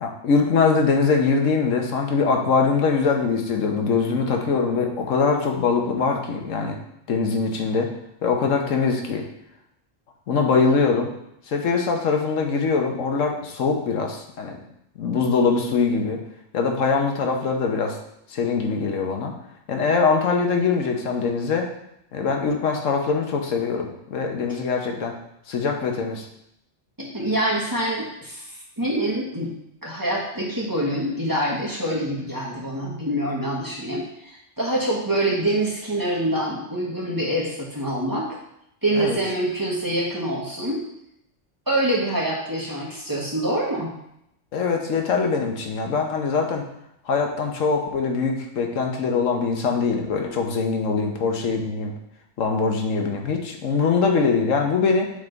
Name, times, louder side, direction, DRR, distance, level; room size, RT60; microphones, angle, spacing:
voice 1, 0.0-6.8 7.1-7.9 8.2-9.2 10.3-11.1 11.5-14.6 15.0-16.2 16.5-18.0 18.3-19.3 19.7-21.7 22.1-25.1 25.5-26.2 38.9-39.2 44.5-46.6 47.1-51.9 52.4-55.1, left 5 dB, 85° left, 2 dB, 1.3 m, -22 dB
voice 2, 27.0-29.5 29.8-38.3 38.8-40.8 41.7-43.9, right 1 dB, 15° right, -4 dB, 1.3 m, -25 dB
8.4 x 3.6 x 3.9 m, 0.79 s
omnidirectional pair, 1.3 m